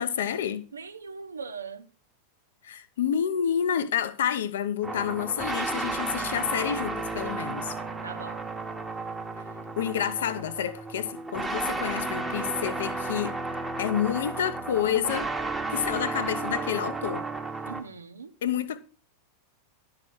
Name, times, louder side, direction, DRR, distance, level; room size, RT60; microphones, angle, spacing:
voice 1, 0.0-0.6 2.6-7.8 9.8-13.4 13.8-15.3 15.7-17.3 18.4-18.8, left 9 dB, 60° left, 0.8 m, -29 dB
voice 2, 0.7-1.9 8.0-8.5 17.7-18.3, right 5 dB, 75° right, 0.8 m, -40 dB
sound 1, 4.8-17.8, right 3 dB, 5° right, 1.2 m, -33 dB
11.5 x 4.9 x 6.1 m
figure-of-eight pair, 90°, 0 cm